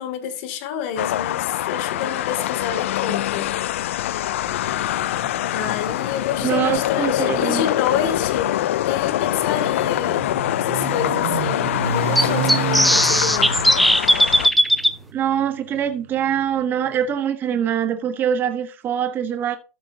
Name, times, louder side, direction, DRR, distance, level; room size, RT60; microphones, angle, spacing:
voice 1, 0.0-3.5 5.5-8.5 8.9-10.3 10.6-13.6, left 8 dB, 55° left, 2.3 m, -28 dB
sound 1, 1.0-14.5, left 13 dB, 75° left, 0.4 m, -24 dB
voice 2, 6.4-7.7 15.1-19.6, right 9 dB, 30° right, 0.8 m, -23 dB
sound 2, 6.6-6.7 8.7-8.8 9.3-9.4 9.6-9.7 12.1-14.9, equal, ahead, 0.5 m, -17 dB
Motorcycle, 8.7-16.9, right 7 dB, 75° right, 1.1 m, -30 dB
13.5 x 6.7 x 2.7 m
hypercardioid pair, 125°, 7 cm